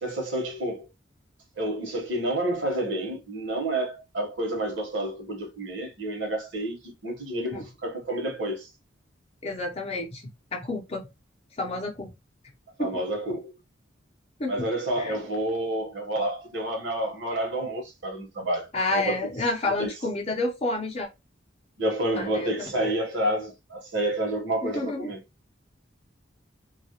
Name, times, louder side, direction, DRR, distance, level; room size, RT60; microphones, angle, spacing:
voice 1, 0.0-0.9 1.6-8.7 12.8-13.5 14.5-19.2 19.8-19.9 21.8-25.2, right 1 dB, 70° right, 0.9 m, -29 dB
voice 2, 9.4-10.2 10.5-11.1 11.6-12.1 12.8-12.9 14.4-14.7 15.0-15.1 18.7-21.1 22.1-22.9 24.6-25.1, left 2 dB, 30° left, 0.6 m, -29 dB
2.3 x 2.1 x 2.8 m
head